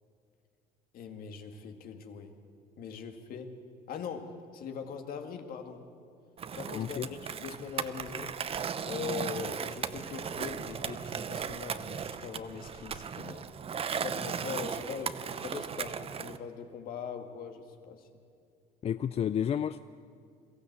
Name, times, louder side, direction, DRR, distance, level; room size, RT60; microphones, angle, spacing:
voice 1, 0.9-2.3 2.8-3.5 3.9-5.9 6.5-8.3 8.8-13.5 13.9-18.1, left 6 dB, 60° left, 5 dB, 2.1 m, -41 dB
Skateboard, 6.4-16.4, right 7 dB, 35° right, 0.8 m, -37 dB
voice 2, 6.7-7.1 18.8-19.8, left 9 dB, 40° left, 13 dB, 0.4 m, -31 dB
22.5 x 14.5 x 8.1 m, 2.3 s
cardioid pair, 95°, 17 cm